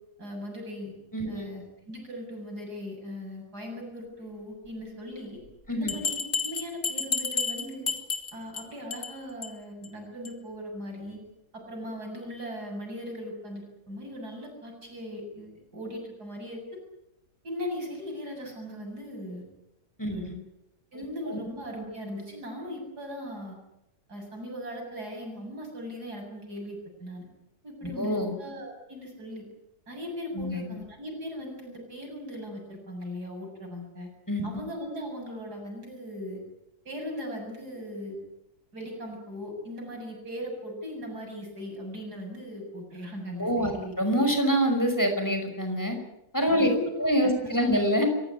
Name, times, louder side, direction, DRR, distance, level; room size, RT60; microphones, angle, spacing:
voice 1, 0.2-0.9 1.3-5.4 5.7-7.9 8.3-11.2 11.5-16.8 17.4-19.5 20.1-20.3 20.9-23.6 24.1-27.3 27.6-29.5 29.9-34.1 34.4-36.4 36.8-38.2 38.7-43.9 46.6-46.9 47.2-47.7, equal, 80° right, 2 dB, 8.3 m, -39 dB
voice 2, 1.1-1.5 5.7-5.9 20.0-20.3 21.3-21.4 28.0-28.3 30.3-30.7 34.3-34.4 43.4-46.0 46.3-46.7 47.0-48.1, equal, 10° left, 5 dB, 5.6 m, -25 dB
Bell, 5.9-8.6 8.9-9.1 9.4-9.5 9.8-9.9 10.2-10.3, left 4 dB, 65° left, 3.4 m, -30 dB
26.5 x 17.0 x 9.7 m, 0.86 s
omnidirectional pair, 1.7 m